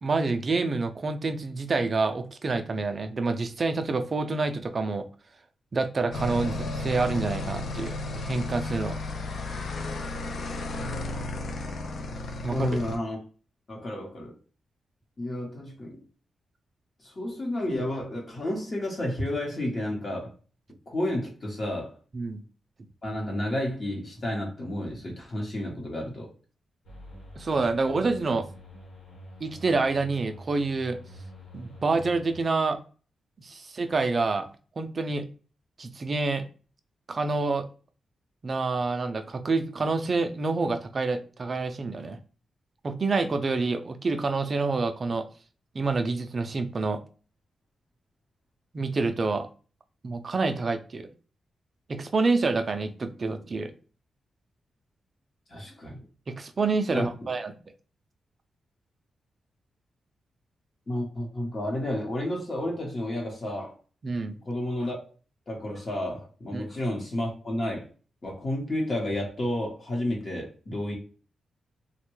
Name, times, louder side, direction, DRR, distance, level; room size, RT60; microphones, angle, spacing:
voice 1, 0.0-5.1 5.7-9.0 12.4-12.8 22.1-22.4 27.4-28.5 29.4-31.0 31.5-32.8 33.4-34.5 34.8-35.3 35.8-36.4 37.1-37.7 38.4-42.2 42.8-45.3 45.7-47.0 48.7-49.5 50.0-51.1 51.9-53.7 56.3-57.5 64.0-64.4 66.5-66.7, right 3 dB, 35° right, 8 dB, 0.4 m, -27 dB
sound 1, 6.1-13.0, left 2 dB, 55° left, 0.4 m, -33 dB
voice 2, 12.5-13.2 13.7-14.3 15.2-16.0 17.0-20.3 20.9-21.9 23.0-26.3 55.5-56.0 56.9-57.1 60.9-63.8 64.4-65.0 65.5-67.9 68.2-70.9, left 1 dB, 35° left, 0 dB, 0.9 m, -31 dB
sound 2, 26.8-32.4, left 1 dB, 80° left, 1.2 m, -46 dB
3.4 x 2.2 x 3.0 m, 0.38 s
wide cardioid pair, 145°, 0 cm